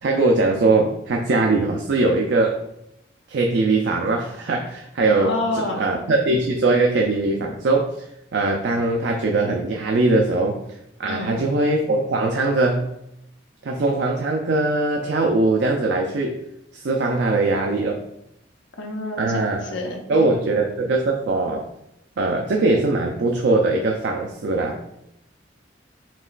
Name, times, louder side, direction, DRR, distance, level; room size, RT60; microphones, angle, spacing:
voice 1, 0.0-2.6 3.3-8.1 8.3-13.0 13.6-16.4 16.7-18.0 19.2-19.7 20.1-21.7 22.2-24.8, right 2 dB, 65° right, 2 dB, 0.4 m, -21 dB
voice 2, 5.2-5.8 11.1-11.4 18.8-20.0, left 2 dB, 75° left, 1 dB, 0.8 m, -28 dB
5.4 x 3.0 x 2.4 m, 0.82 s
head